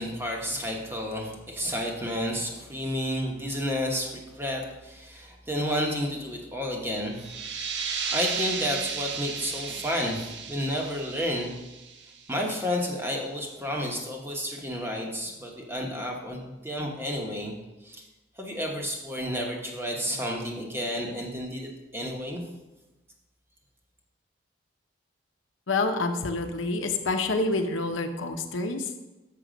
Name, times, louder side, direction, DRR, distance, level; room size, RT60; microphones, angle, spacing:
voice 1, 0.0-7.3 8.1-11.5 12.3-17.5 17.8-18.1 18.4-22.4, equal, 10° right, 0 dB, 1.1 m, -31 dB
sound 1, 7.1-12.5, right 6 dB, 60° right, 0.8 m, -34 dB
voice 2, 25.7-28.9, left 3 dB, 85° left, 5 dB, 0.8 m, -27 dB
6.8 x 6.7 x 5.1 m, 1.1 s
head